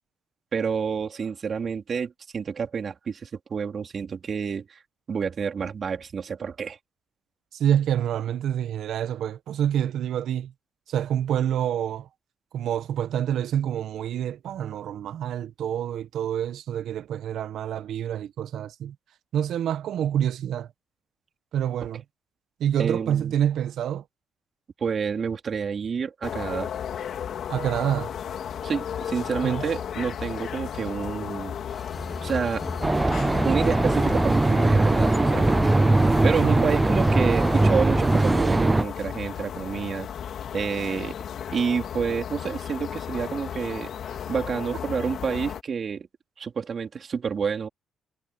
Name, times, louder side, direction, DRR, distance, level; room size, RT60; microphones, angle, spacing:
voice 1, 0.5-4.8 5.1-6.8 22.8-23.3 24.8-26.7 28.6-31.6 32.2-32.6 33.4-35.6 36.2-40.1 40.5-41.2 41.5-43.9 44.3-46.1 46.4-47.7, right 6 dB, 45° right, 3.8 m, -29 dB
voice 2, 7.5-10.5 10.9-12.1 12.5-18.9 19.3-20.7 21.5-22.0 22.6-24.0 27.5-28.1 29.4-29.6 36.4-36.6, right 10 dB, 75° right, 1.4 m, -27 dB
sound 1, 26.2-45.6, left 8 dB, 65° left, 2.4 m, -34 dB
sound 2, 31.7-38.4, left 2 dB, 15° left, 5.7 m, -35 dB
sound 3, 32.8-38.8, right 2 dB, 15° right, 0.4 m, -21 dB
cardioid pair, 90°, 0 cm